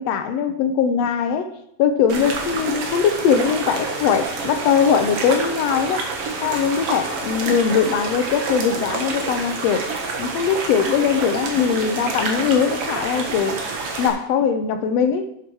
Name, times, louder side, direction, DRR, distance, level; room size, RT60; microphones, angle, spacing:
voice 1, 0.0-1.5 1.8-6.0 6.4-9.9 10.2-13.6 14.0-15.3, left 7 dB, 70° left, 8 dB, 1.7 m, -21 dB
sound 1, 2.1-14.1, right 3 dB, 55° right, 2.1 m, -28 dB
11.5 x 7.7 x 4.8 m, 0.76 s
omnidirectional pair, 3.7 m